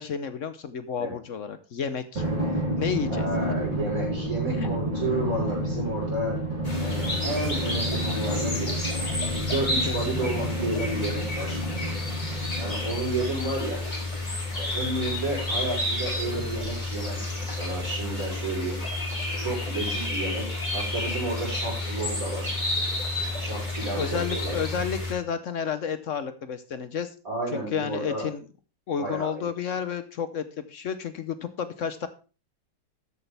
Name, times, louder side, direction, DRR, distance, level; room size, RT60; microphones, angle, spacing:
voice 1, 0.0-2.2 2.8-3.3 4.5-4.8 9.9-10.3 23.9-27.1 27.5-28.4 28.9-32.1, left 7 dB, 60° left, 11 dB, 0.9 m, -31 dB
Drum, 2.2-13.2, right 1 dB, 75° right, 5.6 m, -30 dB
voice 2, 3.1-6.4 6.8-8.9 9.3-11.6 12.6-13.8 14.5-18.8 19.4-20.4 20.7-22.5 23.4-24.6 27.2-28.3 29.0-29.5, right 2 dB, 45° right, -5 dB, 6.5 m, -31 dB
sound 1, 6.6-25.1, left 2 dB, 25° left, 2.8 m, -30 dB
13.0 x 8.4 x 3.4 m, 0.34 s
omnidirectional pair, 2.1 m